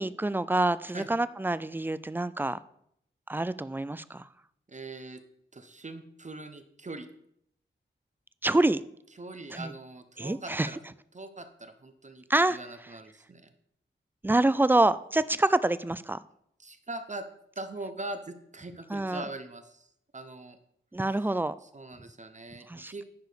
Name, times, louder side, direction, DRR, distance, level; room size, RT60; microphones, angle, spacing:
voice 1, 0.0-2.6 3.3-4.3 8.4-8.8 9.5-9.7 10.2-10.7 12.3-12.6 14.2-16.2 18.9-19.2 20.9-21.5 22.7-22.9, right 2 dB, 10° right, 17 dB, 0.3 m, -26 dB
voice 2, 4.7-5.2 5.5-7.1 9.2-10.8 11.1-12.2 12.5-13.5 16.6-17.2 17.6-19.9 20.1-20.6 21.6-23.0, right 2 dB, 35° right, 9 dB, 0.7 m, -41 dB
10.5 x 4.8 x 5.0 m, 0.72 s
wide cardioid pair, 90°, 20 cm